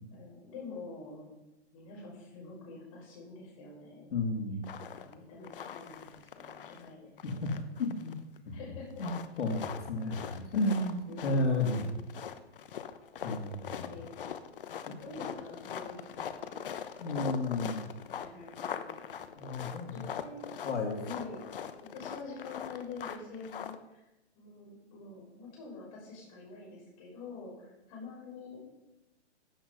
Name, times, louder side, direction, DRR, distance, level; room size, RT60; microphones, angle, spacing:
voice 1, 0.1-1.3 1.7-4.1 4.8-7.6 8.5-9.0 11.0-11.9 13.8-14.3 14.8-16.6 18.2-19.3 19.9-20.6 21.0-21.5 21.8-24.1 24.3-28.8, left 3 dB, 30° left, -3 dB, 6.5 m, -46 dB
voice 2, 4.1-4.7 7.2-7.5 7.8-8.2 8.5-8.6 9.0-11.0 11.2-11.8 13.2-13.9 14.9-15.0 17.0-17.8 19.4-20.0 20.6-21.0, left 2 dB, 80° left, 1 dB, 3.2 m, -32 dB
sound 1, 4.6-5.1 5.4-6.9 7.2-8.4 8.9-23.7, left 8 dB, 50° left, 1.1 m, -42 dB
16.0 x 9.7 x 5.6 m, 0.96 s
hypercardioid pair, 175°, 35 cm